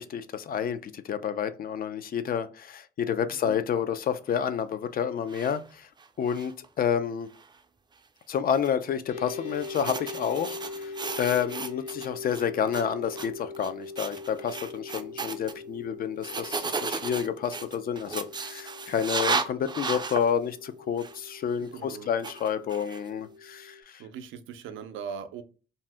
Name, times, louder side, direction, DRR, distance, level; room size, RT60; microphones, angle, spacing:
voice 1, 0.0-5.9 6.2-7.3 8.3-10.9 11.2-24.0, left 8 dB, 50° left, 0.4 m, -29 dB
sound 1, 5.3-5.6 6.0-6.7 7.3-7.5 8.5-8.7 9.5-12.1 12.3-12.8 13.1-13.3 13.5-13.7 14.0-15.5 16.2-20.3 21.0-21.2 22.2-23.1, right 4 dB, 20° right, 0.4 m, -34 dB
sound 2, 9.1-23.8, left 3 dB, 80° left, 0.9 m, -42 dB
voice 2, 21.6-22.1 24.0-25.4, right 7 dB, 80° right, 0.5 m, -40 dB
2.7 x 2.0 x 3.3 m
cardioid pair, 90°, 20 cm